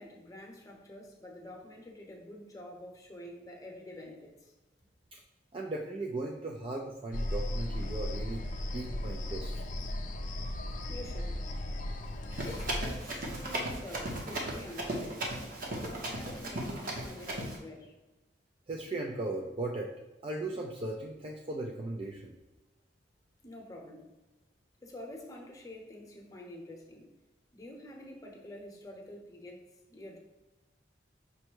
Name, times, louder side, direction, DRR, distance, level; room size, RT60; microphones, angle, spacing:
voice 1, 0.0-4.5 10.9-11.4 12.4-15.3 15.6-17.9 23.4-24.1 24.8-27.1 27.5-29.6 29.9-30.2, left 1 dB, 20° left, 0 dB, 0.8 m, -47 dB
voice 2, 5.5-8.4 8.7-9.6 18.7-19.9 20.2-22.3, right 2 dB, 30° right, 0 dB, 0.4 m, -37 dB
sound 1, 7.1-12.9, left 1 dB, 45° left, 0.4 m, -36 dB
Run, 12.3-17.6, right 1 dB, 50° right, 0.9 m, -36 dB
5.4 x 2.1 x 4.5 m, 1.1 s
head